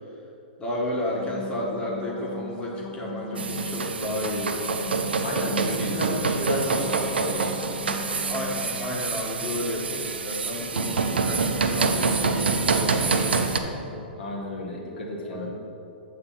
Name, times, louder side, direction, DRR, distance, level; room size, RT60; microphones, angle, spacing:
voice 1, 0.6-4.6 5.4-5.8 8.3-14.0 15.3-15.5, left 1 dB, 20° left, -3 dB, 1.4 m, -32 dB
sound 1, 1.0-8.9, left 2 dB, 50° left, 1.0 m, -39 dB
sound 2, 3.4-13.6, right 4 dB, 80° right, 0.6 m, -26 dB
voice 2, 5.2-8.1 10.8-11.0 14.2-15.5, left 1 dB, 65° left, -2 dB, 1.5 m, -33 dB
7.9 x 4.1 x 5.8 m, 2.8 s
hypercardioid pair, 115°, 5 cm